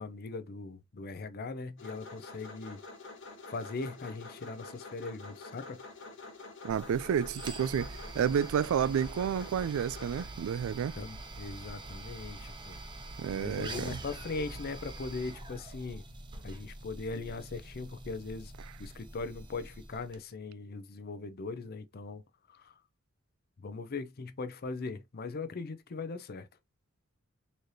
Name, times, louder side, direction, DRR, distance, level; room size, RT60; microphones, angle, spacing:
voice 1, 0.0-2.8 3.5-5.8 11.0-12.8 13.3-16.0 16.4-18.5 18.8-22.2 22.5-22.8 23.6-26.5, left 3 dB, 50° left, 0.5 m, -40 dB
sound 1, 1.8-10.2, left 3 dB, 65° left, 1.2 m, -48 dB
voice 2, 6.6-11.0 13.2-14.0, right 8 dB, 90° right, 0.3 m, -30 dB
sound 2, 6.7-20.2, right 2 dB, 25° right, 0.7 m, -45 dB
4.1 x 3.2 x 2.6 m
head